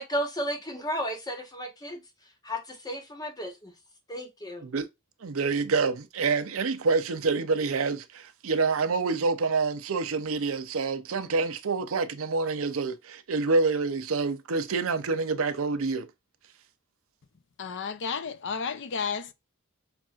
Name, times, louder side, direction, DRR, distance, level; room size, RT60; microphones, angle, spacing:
voice 1, 0.0-2.0 2.4-3.7 4.1-4.7, equal, 20° left, 1.2 m, -33 dB
voice 2, 5.2-16.1, right 4 dB, 70° right, 0.6 m, -27 dB
voice 3, 17.6-19.3, left 5 dB, 60° left, 0.5 m, -32 dB
5.8 x 2.5 x 2.4 m
head